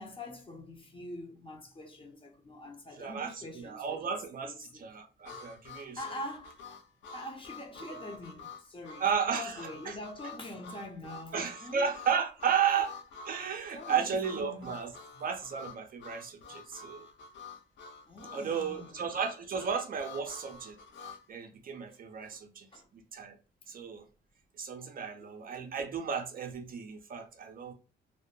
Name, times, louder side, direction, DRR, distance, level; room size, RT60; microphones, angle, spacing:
voice 1, 0.0-4.8 6.0-6.6 7.1-9.1 9.3-11.9 12.7-12.8 13.7-14.7 15.1-15.2 18.1-19.0 22.2-22.3 22.7-22.9 25.2-25.3, left 1 dB, 25° left, 0.7 m, -44 dB
voice 2, 3.0-6.0 7.8-7.9 9.0-10.0 11.3-12.9 13.3-14.9 15.2-17.1 18.3-20.8 21.3-22.7 23.1-23.4 23.7-24.0 24.6-27.7, right 7 dB, 45° right, 0.5 m, -33 dB
Harmonica, 5.2-21.2, left 4 dB, 70° left, 0.5 m, -48 dB
2.1 x 2.0 x 3.1 m
cardioid pair, 90°, 20 cm